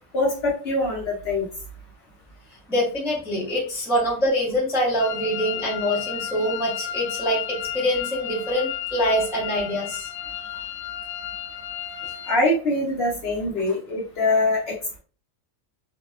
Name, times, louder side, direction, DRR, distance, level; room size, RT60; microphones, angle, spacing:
voice 1, 0.1-1.5 12.3-15.0, left 2 dB, 60° left, -2 dB, 0.7 m, -23 dB
voice 2, 2.7-10.1 10.5-10.6, equal, 5° right, -5 dB, 0.4 m, -25 dB
sound 1, 5.0-12.4, left 10 dB, 80° left, 1.1 m, -33 dB
2.7 x 2.1 x 2.3 m, 0.38 s
omnidirectional pair, 1.6 m